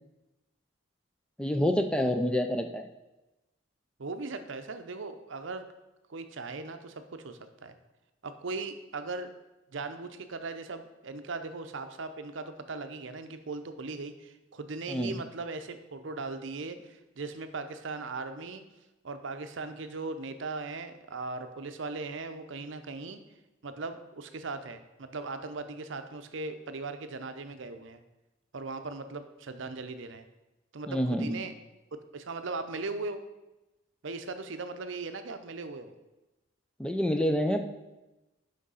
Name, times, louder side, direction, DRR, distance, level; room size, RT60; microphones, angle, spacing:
voice 1, 1.4-2.9 14.9-15.2 30.9-31.4 36.8-37.7, equal, 5° left, 6 dB, 0.4 m, -27 dB
voice 2, 4.0-5.6 6.1-7.7 8.2-9.3 9.7-18.6 19.0-23.2 23.6-28.0 28.5-30.3 30.7-31.5 32.1-33.2 34.0-35.9, right 3 dB, 65° right, 9 dB, 0.6 m, -38 dB
6.3 x 5.2 x 5.5 m, 1.0 s
head